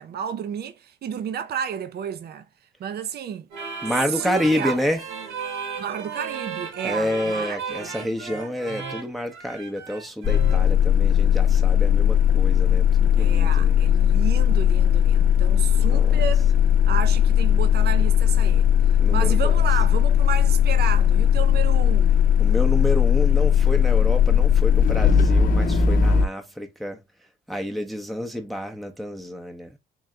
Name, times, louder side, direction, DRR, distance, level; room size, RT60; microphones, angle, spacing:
voice 1, 0.0-2.5 2.8-3.5 4.1-4.9 5.8-7.9 13.2-16.5 16.9-18.7 19.1-22.2, right 8 dB, 55° right, 0.6 m, -31 dB
sound 1, 3.5-10.7, right 5 dB, 85° right, 1.7 m, -35 dB
voice 2, 3.8-5.0 6.8-13.8 15.7-16.2 19.0-19.5 22.4-27.0 27.5-29.8, left 1 dB, ahead, 0.8 m, -29 dB
sound 2, 10.2-26.3, left 8 dB, 45° left, 0.7 m, -18 dB
3.7 x 2.7 x 3.2 m
cardioid pair, 90°, 20 cm